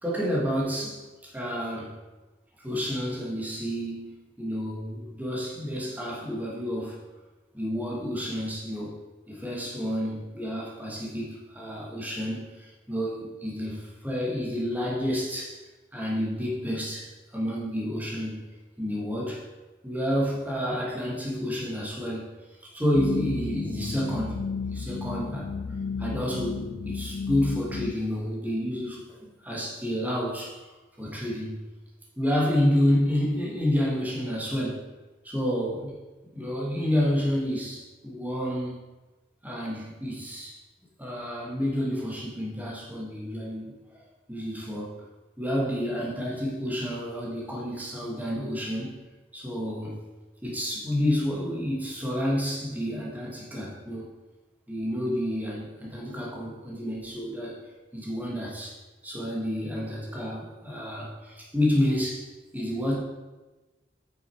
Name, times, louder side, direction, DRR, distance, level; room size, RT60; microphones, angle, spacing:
voice 1, 0.0-2.0 2.6-7.0 7.5-9.0 9.3-15.6 15.9-18.4 18.8-19.4 19.8-22.3 22.6-25.5 26.0-31.7 32.2-34.9 35.2-35.9 36.3-38.8 39.4-40.6 41.0-44.0 44.3-45.0 45.4-49.0 49.3-50.0 50.4-54.1 54.7-57.6 57.9-58.8 59.0-62.2 62.5-63.0, equal, 10° right, -4 dB, 2.0 m, -29 dB
sound 1, 22.9-27.9, left 5 dB, 45° left, 0.3 m, -33 dB
8.9 x 6.9 x 4.7 m, 1.1 s
head